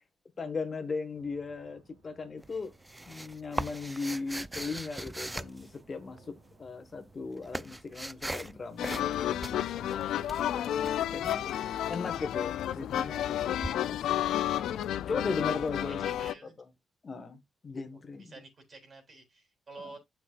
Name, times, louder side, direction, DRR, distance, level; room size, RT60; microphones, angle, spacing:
voice 1, 0.4-2.7 3.1-11.4 11.9-14.1 15.1-16.7 17.0-18.3 19.8-19.9, left 4 dB, 40° left, 1.2 m, -38 dB
sound 1, 1.1-11.6, right 2 dB, 90° right, 3.4 m, -62 dB
sound 2, 2.4-6.2 7.0-8.5 8.8-9.1 9.4-11.4 13.6-13.7, right 1 dB, 10° right, 0.3 m, -39 dB
sound 3, 8.8-16.3, left 11 dB, 85° left, 0.4 m, -31 dB
voice 2, 15.7-16.6 18.2-20.0, right 3 dB, 45° right, 3.3 m, -49 dB
9.2 x 5.9 x 2.4 m
cardioid pair, 80°, 0 cm